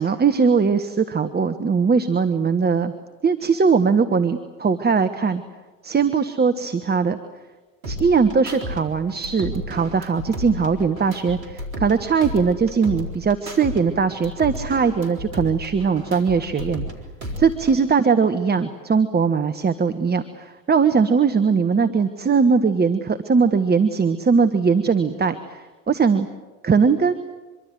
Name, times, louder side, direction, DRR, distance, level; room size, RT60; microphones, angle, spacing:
voice 1, 0.0-2.9 3.2-5.4 5.8-7.2 7.9-16.9 17.4-26.3 26.6-27.1, right 5 dB, 25° right, 9 dB, 1.5 m, -20 dB
sound 1, 7.8-8.8 9.1-12.0 12.2-13.8 14.1-16.9 17.2-17.8, left 1 dB, 90° right, 3.8 m, -32 dB
25.5 x 23.5 x 7.9 m, 1.2 s
hypercardioid pair, 65°, 40 cm